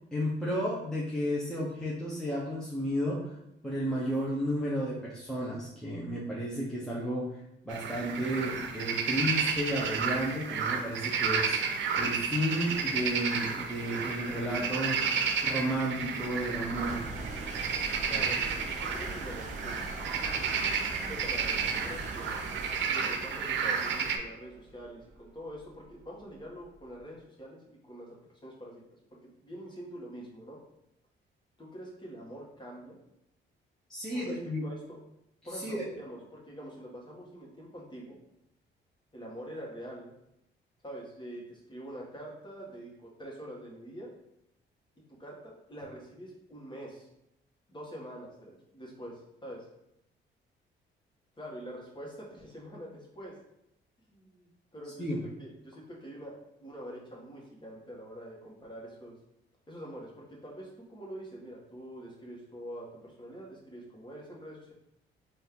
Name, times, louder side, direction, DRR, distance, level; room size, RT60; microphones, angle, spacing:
voice 1, 0.1-3.3 3.6-15.0 15.4-17.1 18.1-18.2 33.9-34.6 35.5-35.9 55.0-55.2, equal, 5° left, -6 dB, 0.9 m, -33 dB
sound 1, 7.7-24.2, right 6 dB, 65° right, 0.6 m, -32 dB
sound 2, 15.3-27.0, right 2 dB, 35° right, 0.8 m, -43 dB
voice 2, 18.1-19.8 21.1-22.3 22.9-28.2 28.4-30.6 31.6-33.0 34.1-35.0 35.4-38.2 39.1-40.1 40.8-44.1 45.0-47.1 47.7-49.6 51.4-53.3 54.1-59.2 59.7-64.7, equal, 25° left, -3 dB, 1.5 m, -45 dB
4.2 x 2.7 x 3.7 m, 0.83 s
cardioid pair, 90°, 20 cm